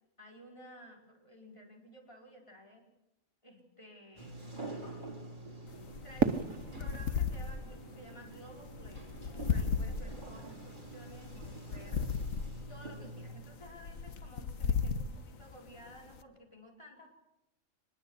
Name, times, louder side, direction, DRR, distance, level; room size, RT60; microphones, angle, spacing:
voice 1, 0.2-2.8 3.4-4.5 6.0-12.4 12.7-17.1, equal, 25° left, 0 dB, 4.8 m, -54 dB
Sliding door, 4.2-13.3, right 2 dB, 35° right, 4.1 m, -47 dB
sound 1, 5.7-16.2, left 6 dB, 85° left, 1.7 m, -37 dB
Fireworks, 6.2-9.2, right 6 dB, 90° right, 1.7 m, -35 dB
25.0 x 21.0 x 8.0 m, 0.89 s
omnidirectional pair, 1.3 m